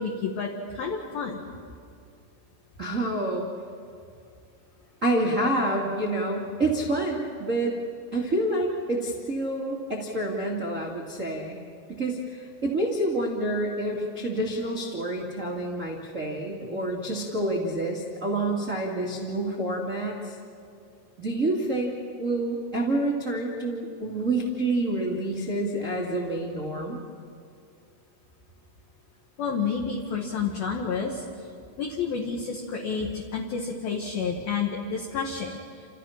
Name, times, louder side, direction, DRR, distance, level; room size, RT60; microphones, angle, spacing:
voice 1, 0.0-1.4 29.4-31.2 31.8-35.6, left 5 dB, 60° left, -1 dB, 3.0 m, -30 dB
voice 2, 2.8-3.5 5.0-7.7 8.1-11.6 11.9-20.3 21.2-27.0, right 1 dB, 65° right, -2 dB, 0.7 m, -28 dB
29.5 x 27.5 x 5.9 m, 2.3 s
omnidirectional pair, 6.0 m